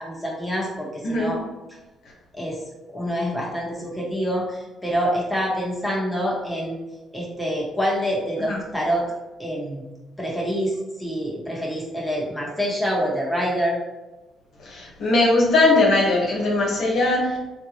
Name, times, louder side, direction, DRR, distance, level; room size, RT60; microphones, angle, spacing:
voice 1, 0.0-1.4 2.3-2.6 2.9-6.8 7.1-9.8 10.2-13.8, equal, 5° left, -5 dB, 1.3 m, -26 dB
voice 2, 14.6-17.4, left 2 dB, 70° left, -3 dB, 1.2 m, -20 dB
3.5 x 2.9 x 2.8 m, 1.1 s
cardioid pair, 75°, 0 cm